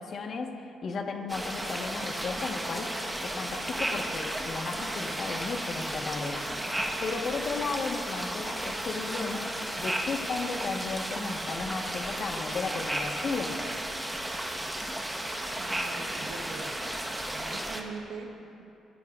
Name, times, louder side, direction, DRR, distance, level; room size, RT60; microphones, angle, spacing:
voice 1, 0.0-2.9 3.2-6.7 7.0-9.5 9.8-13.5, left 4 dB, 55° left, 3 dB, 1.6 m, -34 dB
sound 1, 1.3-17.8, right 1 dB, 10° right, 1.5 m, -34 dB
voice 2, 14.6-15.0 15.6-16.8 17.3-18.7, right 4 dB, 85° right, 2 dB, 1.5 m, -43 dB
24.0 x 16.0 x 2.6 m, 2.8 s
cardioid pair, 90°, 0 cm